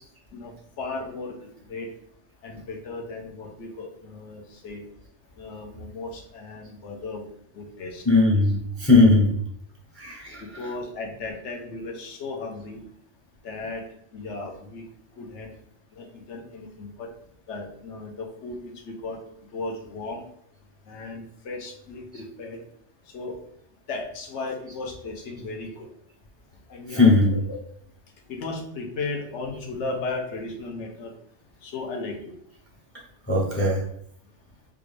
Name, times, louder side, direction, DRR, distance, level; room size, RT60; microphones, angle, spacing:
voice 1, 0.8-1.9 2.4-4.8 5.4-7.3 7.5-8.0 10.4-12.8 13.4-13.8 14.1-14.8 15.2-15.5 15.9-17.1 17.5-19.2 19.5-20.2 20.9-22.6 23.1-23.4 23.9-25.9 26.7-27.4 28.3-31.1 31.6-32.1, left 3 dB, 75° left, 2 dB, 1.0 m, -35 dB
voice 2, 8.0-9.3 10.0-10.7 26.9-27.4 33.3-33.8, left 2 dB, 15° left, -2 dB, 0.5 m, -19 dB
3.6 x 2.4 x 3.1 m, 0.70 s
omnidirectional pair, 1.2 m